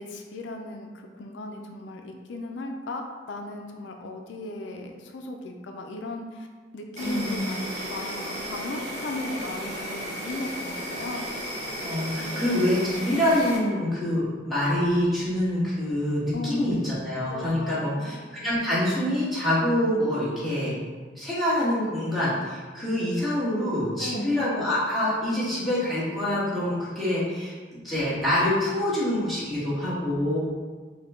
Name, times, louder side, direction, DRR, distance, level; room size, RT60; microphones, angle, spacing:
voice 1, 0.0-6.5 6.7-11.5 12.2-12.5 16.3-17.0 17.3-18.2 24.0-24.4, left 2 dB, 85° left, 3 dB, 0.4 m, -36 dB
voice 2, 6.9-7.5 11.8-20.7 21.1-27.6 27.8-30.4, left 1 dB, ahead, -11 dB, 1.4 m, -26 dB
Insect, 7.0-13.6, equal, 40° right, 1.0 m, -34 dB
5.5 x 2.2 x 3.6 m, 1.4 s
head